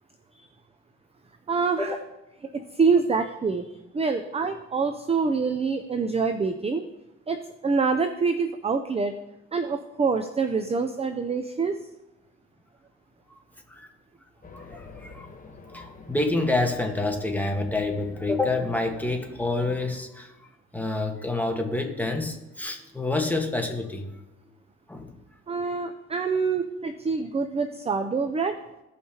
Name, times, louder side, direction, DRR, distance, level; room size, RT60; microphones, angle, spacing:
voice 1, 1.5-1.9 2.5-3.7 3.9-6.8 7.3-9.1 9.5-11.8 25.5-28.5, right 4 dB, 20° right, 7 dB, 0.5 m, -26 dB
Race car auto racing, 14.4-20.0, left 4 dB, 25° left, 1.1 m, -47 dB
voice 2, 14.5-15.3 15.7-20.3 20.7-24.1 24.9-25.1, left 2 dB, 5° left, 2 dB, 1.4 m, -28 dB
16.0 x 5.6 x 2.9 m, 0.99 s
cardioid pair, 90°, 30 cm